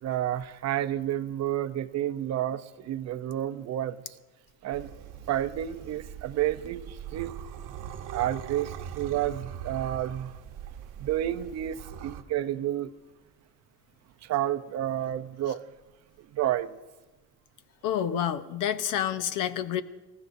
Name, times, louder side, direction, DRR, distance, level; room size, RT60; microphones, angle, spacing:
voice 1, 0.0-4.0 4.6-4.9 5.3-7.3 8.1-10.3 11.0-12.9 14.2-15.6 16.3-16.8, right 12 dB, 55° right, 0.7 m, -30 dB
sound 1, 4.7-12.2, right 9 dB, 70° right, 1.0 m, -41 dB
voice 2, 17.8-19.8, left 10 dB, 75° left, 0.9 m, -28 dB
26.0 x 15.0 x 2.6 m
cardioid pair, 160°, 32 cm